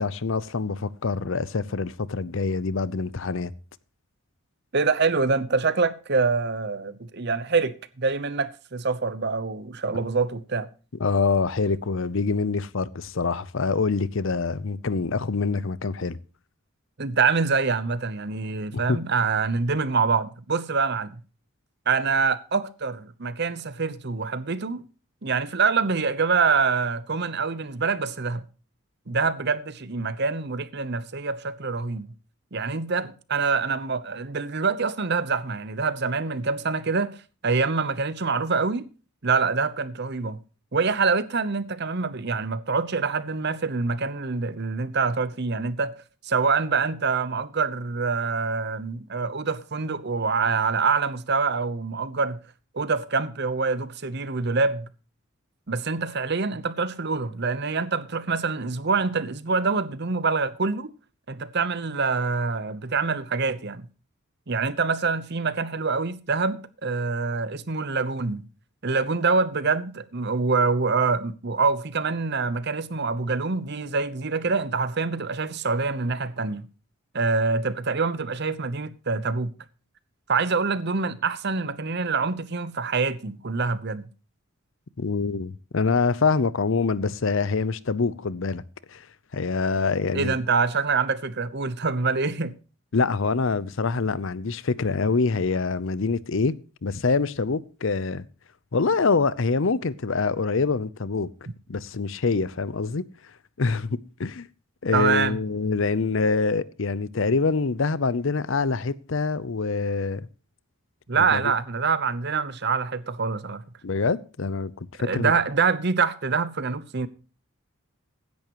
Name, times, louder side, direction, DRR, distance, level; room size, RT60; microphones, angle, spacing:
voice 1, 0.0-3.5 11.0-16.2 18.7-19.0 85.0-88.6 88.9-89.0 89.3-90.4 92.9-96.6 96.8-98.2 98.7-101.3 101.7-103.0 103.6-104.5 104.8-110.2 111.3-111.5 113.8-115.3, left 4 dB, 60° left, 0.6 m, -25 dB
voice 2, 4.7-10.7 17.0-21.2 21.9-24.8 25.2-28.4 29.1-32.1 32.5-37.2 37.4-38.9 39.2-40.4 40.7-45.9 46.2-52.4 52.7-54.9 55.7-60.9 61.3-63.9 64.5-68.5 68.8-76.7 77.1-79.5 80.3-84.1 90.1-92.5 104.9-105.4 111.1-113.6 115.0-117.1, right 4 dB, 50° right, 0.9 m, -25 dB
15.5 x 10.5 x 3.0 m
head